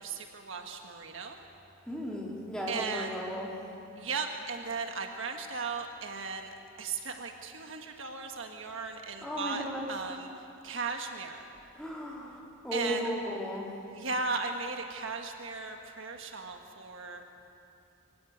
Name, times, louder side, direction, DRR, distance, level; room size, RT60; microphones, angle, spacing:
voice 1, 0.0-1.4 2.7-3.2 4.0-10.3 10.6-11.4 12.7-13.1 13.9-17.3, right 4 dB, 60° right, 3 dB, 1.6 m, -37 dB
voice 2, 1.9-3.5 9.2-10.0 11.8-13.7, equal, 5° left, -3 dB, 3.5 m, -35 dB
24.0 x 16.5 x 9.5 m, 2.9 s
head